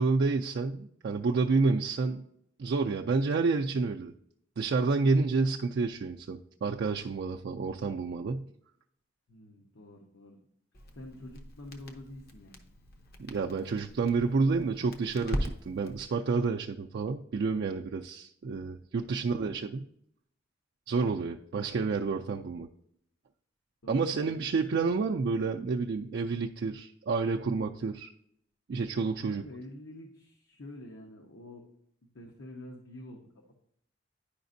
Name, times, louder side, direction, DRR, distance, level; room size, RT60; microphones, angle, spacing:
voice 1, 0.0-2.2 2.6-4.1 4.6-8.4 13.2-19.8 20.9-22.7 23.9-28.1 28.7-29.4, right 4 dB, 55° right, 1 dB, 0.4 m, -29 dB
voice 2, 9.3-10.4 10.9-12.6 23.8-24.9 29.2-31.6 32.1-33.2, left 1 dB, 75° left, 0 dB, 0.9 m, -47 dB
Crackle, 10.7-16.0, equal, 55° left, 0.8 m, -40 dB
10.5 x 5.0 x 2.6 m, 0.70 s
head